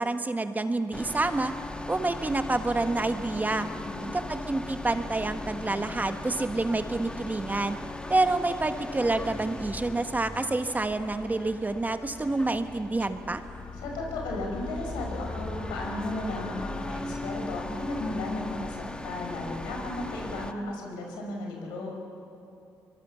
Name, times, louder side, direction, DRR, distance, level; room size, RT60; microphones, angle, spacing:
voice 1, 0.0-1.5 1.9-3.7 4.1-7.8 8.1-13.4, right 2 dB, 25° right, 8 dB, 1.5 m, -28 dB
sound 1, 0.9-20.5, left 2 dB, 10° left, 1.5 m, -39 dB
voice 2, 3.5-4.1 13.8-22.0, left 2 dB, 90° left, 0 dB, 5.2 m, -35 dB
sound 2, 3.7-7.3 11.6-20.8, left 5 dB, 70° left, 2.8 m, -46 dB
23.0 x 22.5 x 7.0 m, 2.7 s
supercardioid pair, 60°, 7 cm